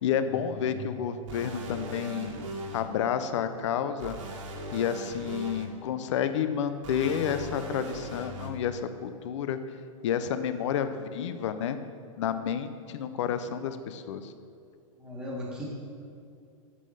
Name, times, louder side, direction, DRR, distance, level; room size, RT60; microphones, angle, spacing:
voice 1, 0.0-2.3 2.7-4.2 4.7-9.6 10.0-11.8 12.2-14.3, left 8 dB, 60° left, 10 dB, 0.6 m, -30 dB
sound 1, 1.3-2.8 4.0-5.6 6.8-8.5, right 1 dB, 65° right, 1.7 m, -39 dB
voice 2, 15.0-15.6, equal, 5° right, -5 dB, 1.6 m, -37 dB
8.3 x 7.7 x 5.6 m, 2.5 s
supercardioid pair, 165°, 18 cm